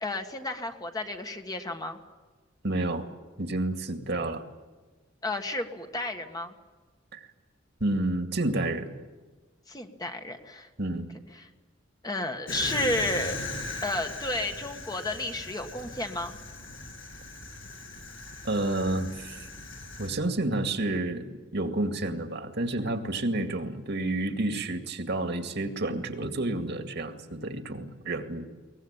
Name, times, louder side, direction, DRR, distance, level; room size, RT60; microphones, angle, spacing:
voice 1, 0.0-2.0 5.2-6.5 9.7-10.7 11.4-11.5 12.0-13.4 13.8-16.4, left 2 dB, 20° left, 5 dB, 1.7 m, -32 dB
voice 2, 2.6-3.1 3.4-4.4 7.1-7.2 7.8-8.9 10.8-11.1 18.4-19.5 20.0-28.5, right 2 dB, 60° right, 7 dB, 2.2 m, -30 dB
Fire, 12.5-20.1, left 2 dB, 80° left, 7.6 m, -39 dB
22.5 x 19.5 x 9.0 m, 1.3 s
head